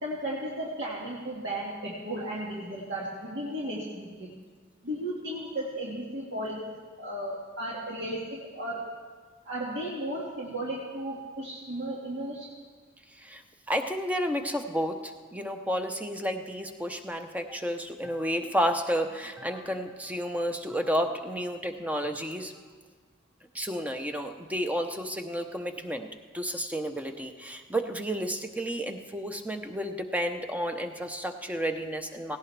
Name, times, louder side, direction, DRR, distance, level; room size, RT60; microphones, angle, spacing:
voice 1, 0.0-4.3 4.8-8.8 9.4-12.5, right 1 dB, 60° right, -6 dB, 1.9 m, -35 dB
voice 2, 13.7-22.5 23.5-26.1 26.3-32.4, equal, 5° right, 6 dB, 0.8 m, -31 dB
17.5 x 17.0 x 3.3 m, 1.5 s
head